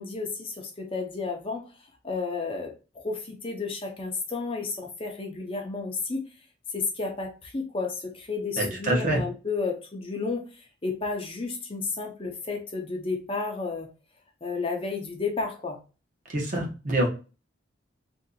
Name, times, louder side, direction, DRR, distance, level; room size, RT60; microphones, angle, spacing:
voice 1, 0.0-1.7 2.0-6.2 6.7-13.9 14.4-15.8, left 4 dB, 30° left, 2 dB, 0.6 m, -32 dB
voice 2, 8.6-9.2 16.3-17.1, right 1 dB, 40° right, 0 dB, 1.0 m, -25 dB
2.7 x 2.3 x 3.8 m, 0.32 s
head